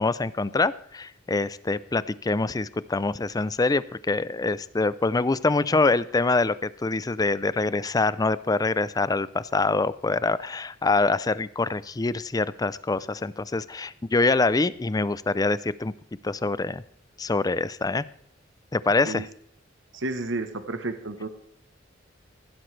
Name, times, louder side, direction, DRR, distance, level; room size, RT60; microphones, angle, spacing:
voice 1, 0.0-15.9 16.2-16.8 17.2-18.1 18.7-19.3, left 3 dB, 20° left, 17 dB, 0.4 m, -25 dB
voice 2, 19.9-21.3, right 2 dB, 70° right, 8 dB, 1.1 m, -31 dB
15.5 x 11.5 x 3.3 m, 0.65 s
head